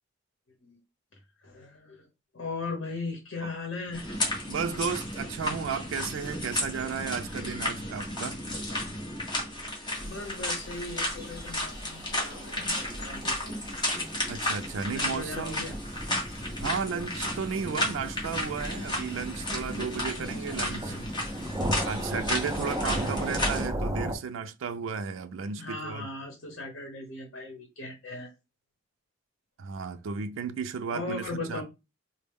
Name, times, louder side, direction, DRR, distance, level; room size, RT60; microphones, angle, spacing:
voice 1, 1.4-2.1 2.3-4.2 10.0-13.7 14.9-15.8 20.1-21.1 23.0-23.6 25.6-28.3 30.9-31.6, left 3 dB, 70° left, 0.9 m, -38 dB
sound 1, 3.9-23.7, left 1 dB, 25° left, 1.3 m, -33 dB
voice 2, 4.5-8.4 14.3-15.7 16.6-21.0 21.8-26.1 29.6-31.6, right 6 dB, 90° right, 0.4 m, -34 dB
sound 2, 9.9-24.2, right 1 dB, 15° right, 0.5 m, -38 dB
4.2 x 2.1 x 3.5 m
head